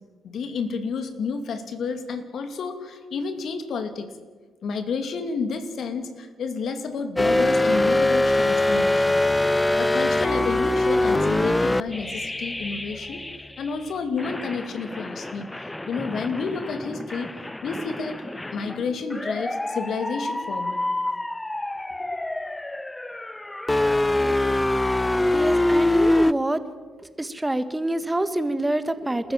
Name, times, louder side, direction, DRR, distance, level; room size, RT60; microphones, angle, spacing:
voice 1, 0.2-4.1 4.6-9.2 9.8-13.2 13.6-17.3 17.6-18.2 18.5-20.8 21.9-22.1, left 5 dB, 60° left, 8 dB, 2.5 m, -30 dB
sound 1, 7.2-13.7 14.2-26.3, left 1 dB, 15° left, 0.7 m, -24 dB
voice 2, 25.3-26.6 27.2-29.3, right 1 dB, 15° right, 11 dB, 1.7 m, -26 dB
29.5 x 14.0 x 7.4 m, 1.4 s
hypercardioid pair, 45°, 0 cm